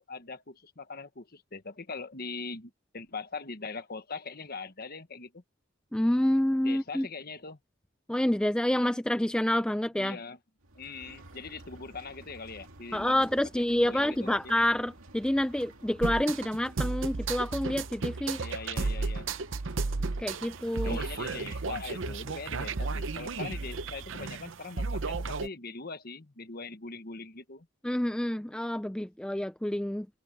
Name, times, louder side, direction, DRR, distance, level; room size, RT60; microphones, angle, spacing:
voice 1, 0.0-5.4 6.6-7.6 10.0-10.4 10.7-13.4 13.7-14.4 18.4-19.3 20.8-27.7, left 4 dB, 45° left, 1.3 m, -41 dB
voice 2, 5.9-7.1 8.1-10.2 12.9-18.4 20.2-21.0 27.8-30.1, left 1 dB, 5° left, 0.3 m, -28 dB
sound 1, 10.6-24.3, right 2 dB, 75° right, 2.4 m, -52 dB
sound 2, 16.0-25.5, right 3 dB, 60° right, 0.7 m, -33 dB
head